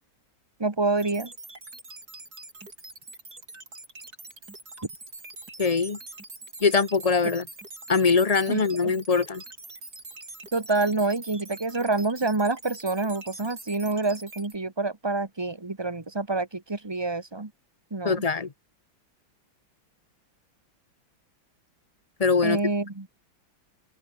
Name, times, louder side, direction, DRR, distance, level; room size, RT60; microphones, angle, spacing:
voice 1, 0.6-1.3 8.5-8.9 10.5-17.5 17.9-18.2 22.4-23.1, right 3 dB, 15° right, 1.5 m, -27 dB
sound 1, 1.0-14.6, right 2 dB, 50° right, 6.9 m, -44 dB
voice 2, 5.6-6.0 6.6-7.4 7.9-9.4 18.0-18.5 22.2-22.6, left 5 dB, 25° left, 0.8 m, -22 dB
open air
omnidirectional pair, 2.2 m